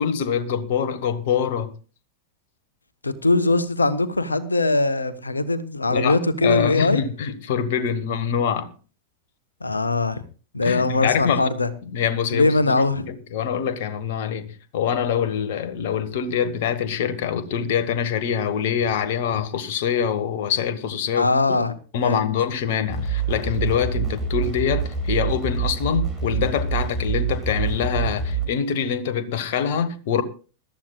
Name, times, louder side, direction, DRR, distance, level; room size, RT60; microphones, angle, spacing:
voice 1, 0.0-1.7 5.9-8.7 10.6-11.5 11.8-21.6 21.9-30.2, left 8 dB, 55° left, 1.3 m, -25 dB
voice 2, 3.0-7.0 9.6-10.2 10.5-11.7 12.3-13.1 21.1-21.7 22.0-22.3, left 2 dB, 80° left, 1.1 m, -21 dB
sound 1, 22.9-28.5, right 6 dB, 15° right, 6.1 m, -26 dB
20.5 x 13.0 x 2.3 m
figure-of-eight pair, 90°, 0 cm